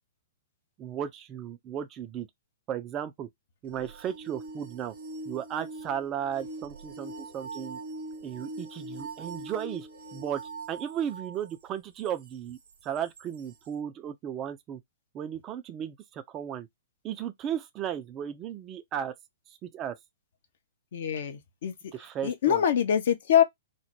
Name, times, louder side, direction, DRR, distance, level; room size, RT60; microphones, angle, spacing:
voice 1, 0.8-2.3 2.7-3.3 3.6-4.9 5.3-7.8 8.2-10.4 10.7-14.8 15.1-16.7 17.0-19.1 19.6-20.0 21.9-22.6, right 9 dB, 25° right, 0.3 m, -35 dB
sound 1, 3.7-11.4 12.1-12.2 13.2-13.3, right 2 dB, 60° right, 0.8 m, -42 dB
voice 2, 20.9-21.9 22.2-23.4, left 9 dB, 55° left, 0.5 m, -24 dB
2.2 x 2.0 x 3.0 m
figure-of-eight pair, 110°, 0 cm